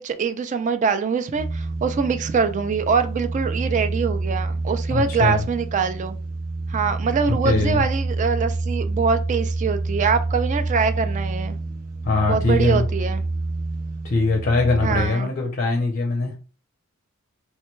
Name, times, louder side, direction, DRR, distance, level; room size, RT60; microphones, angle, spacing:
voice 1, 0.0-6.2 6.7-11.6 12.3-13.2 14.8-15.3, right 5 dB, 35° right, 0.3 m, -23 dB
sound 1, 1.3-15.1, right 2 dB, 85° right, 0.7 m, -27 dB
voice 2, 4.9-5.4 7.4-7.8 12.0-12.9 14.0-16.4, left 3 dB, 40° left, 0.5 m, -21 dB
3.2 x 2.2 x 3.0 m
head